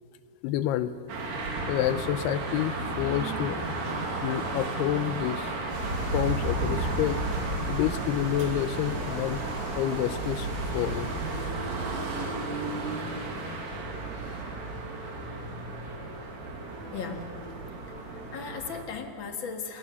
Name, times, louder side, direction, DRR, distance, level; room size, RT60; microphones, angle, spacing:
voice 1, 0.4-1.0 1.7-3.6 4.2-5.5 6.1-7.2 7.7-9.4 9.8-10.5 10.7-11.1, left 12 dB, 85° left, 13 dB, 2.7 m, -28 dB
sound 1, 1.1-18.8, right 3 dB, 50° right, 3.3 m, -34 dB
sound 2, 5.7-11.5, right 1 dB, 25° right, 7.4 m, -33 dB
voice 2, 16.9-17.3 18.1-19.8, left 5 dB, 55° left, 5 dB, 1.4 m, -37 dB
29.0 x 19.5 x 7.0 m, 2.4 s
omnidirectional pair, 4.6 m